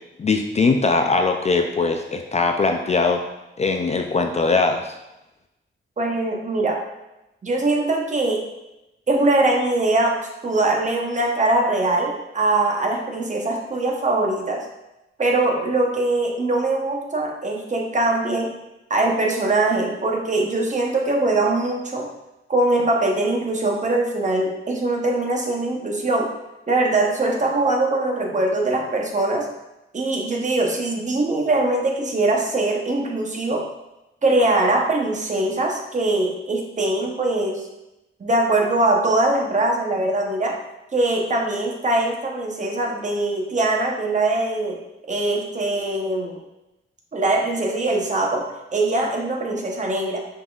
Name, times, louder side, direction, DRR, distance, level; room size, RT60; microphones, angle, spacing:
voice 1, 0.2-3.2 3.6-4.9, left 3 dB, 35° left, 4 dB, 0.4 m, -20 dB
voice 2, 6.0-6.8 7.4-8.4 9.1-14.7 15.2-18.5 18.9-22.1 22.5-26.3 26.7-29.5 29.9-33.6 34.2-37.7 38.2-40.6 40.9-44.8 45.1-46.4 47.1-48.5 48.7-50.2, right 2 dB, 35° right, 0 dB, 0.8 m, -22 dB
5.5 x 3.9 x 2.4 m, 0.94 s
wide cardioid pair, 105°, 20 cm